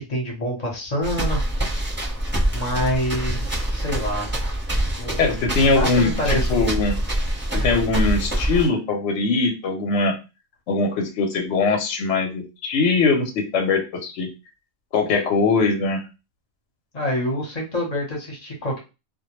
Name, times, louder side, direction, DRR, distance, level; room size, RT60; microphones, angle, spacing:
voice 1, 0.1-1.4 2.5-4.3 5.0-6.6 7.6-7.8 16.9-18.8, equal, 35° left, -1 dB, 0.7 m, -26 dB
sound 1, 1.0-8.7, right 1 dB, 10° right, 0.6 m, -25 dB
voice 2, 5.2-7.0 7.5-10.2 10.7-14.3 14.9-16.0, left 3 dB, 65° left, 2 dB, 0.8 m, -21 dB
2.2 x 2.1 x 2.9 m, 0.28 s
omnidirectional pair, 1.4 m